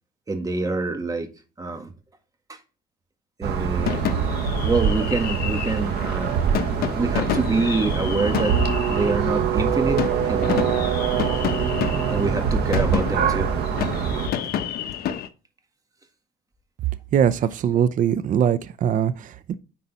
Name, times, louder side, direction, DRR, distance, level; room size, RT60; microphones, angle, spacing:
voice 1, 0.3-1.3 1.6-1.9 2.5-2.6 3.4-4.0 4.6-6.5 6.9-10.8 12.1-13.5 14.4-14.5 17.7-17.8, right 3 dB, 20° right, 1.8 m, -26 dB
sound 1, 3.4-14.3, right 7 dB, 75° right, 1.4 m, -24 dB
sound 2, 3.8-15.3, left 9 dB, 65° left, 1.0 m, -30 dB
voice 2, 17.1-19.5, right 9 dB, 50° right, 0.6 m, -21 dB
9.9 x 4.1 x 5.4 m
cardioid pair, 110°, 17 cm